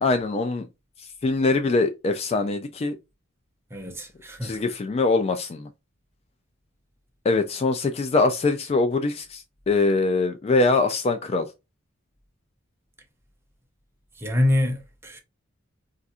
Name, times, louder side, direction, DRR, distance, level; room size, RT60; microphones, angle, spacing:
voice 1, 0.0-0.7 1.2-3.0 4.4-5.7 7.2-11.5, left 3 dB, 30° left, 0.3 m, -23 dB
voice 2, 3.7-4.6 14.2-15.2, left 1 dB, 10° right, 0.7 m, -25 dB
2.5 x 2.3 x 4.1 m
head